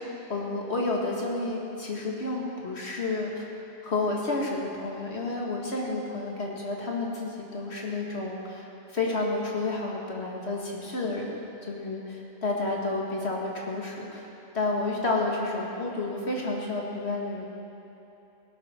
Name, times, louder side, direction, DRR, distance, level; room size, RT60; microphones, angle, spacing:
voice 1, 0.0-3.5 3.8-8.7 8.9-11.3 11.6-14.3 14.5-17.5, left 2 dB, 60° left, -2 dB, 2.2 m, -30 dB
18.0 x 11.5 x 4.5 m, 2.9 s
omnidirectional pair, 1.2 m